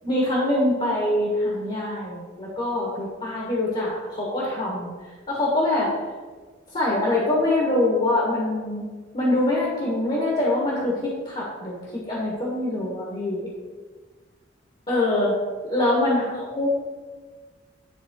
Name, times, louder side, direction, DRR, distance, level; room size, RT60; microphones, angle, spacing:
voice 1, 0.0-4.9 5.3-5.9 6.7-8.9 9.1-13.5 14.9-15.4 15.6-16.7, left 1 dB, 35° left, -4 dB, 1.5 m, -24 dB
10.5 x 3.5 x 3.8 m, 1.4 s
head